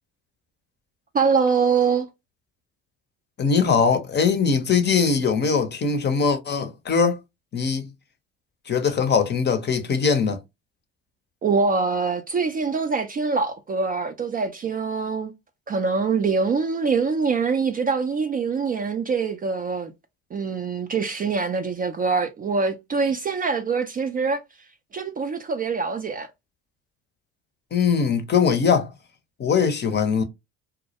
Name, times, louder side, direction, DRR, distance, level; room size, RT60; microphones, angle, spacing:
voice 1, 1.1-2.1 11.4-15.3 15.7-19.9 20.3-24.4 24.9-26.3, right 5 dB, 25° right, 0.4 m, -24 dB
voice 2, 3.4-7.2 7.5-7.9 8.7-10.4 27.7-28.9 29.4-30.2, left 6 dB, 30° left, 0.6 m, -21 dB
2.3 x 2.0 x 2.7 m
hypercardioid pair, 65°, 34 cm